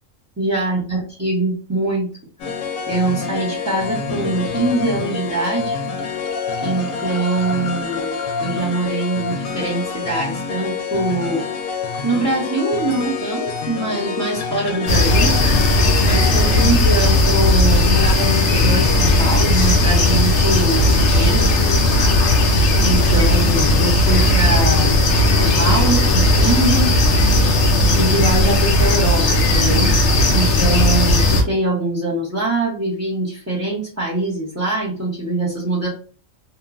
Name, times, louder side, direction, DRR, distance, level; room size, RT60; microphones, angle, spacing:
voice 1, 0.4-2.1 2.9-5.8 6.6-15.4 16.1-21.5 22.8-27.5 27.9-29.9 30.3-35.9, right 2 dB, 15° right, -6 dB, 0.6 m, -23 dB
sound 1, 2.4-16.7, left 5 dB, 90° left, 1.0 m, -27 dB
sound 2, 14.9-31.4, left 1 dB, 65° left, 0.8 m, -15 dB
2.8 x 2.1 x 2.4 m, 0.38 s
omnidirectional pair, 1.4 m